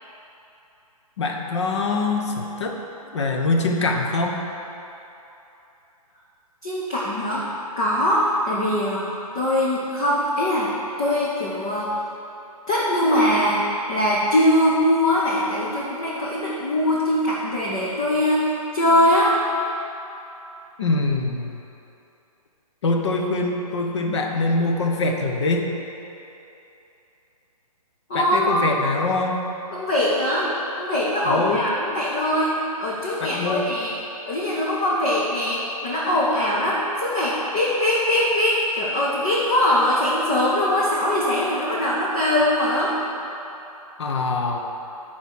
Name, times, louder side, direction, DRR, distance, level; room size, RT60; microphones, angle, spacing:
voice 1, 1.2-2.8 3.1-4.4 20.8-21.6 22.8-25.6 28.1-29.4 31.2-31.7 33.2-33.7 44.0-44.6, left 3 dB, 50° left, 2 dB, 0.9 m, -23 dB
voice 2, 6.6-7.5 7.8-10.7 11.0-11.9 12.7-13.6 13.9-19.4 28.1-28.6 29.7-32.5 32.8-33.9 34.3-43.0, left 1 dB, 10° left, -6 dB, 0.4 m, -22 dB
7.9 x 4.4 x 6.2 m, 2.9 s
hypercardioid pair, 165°, 20 cm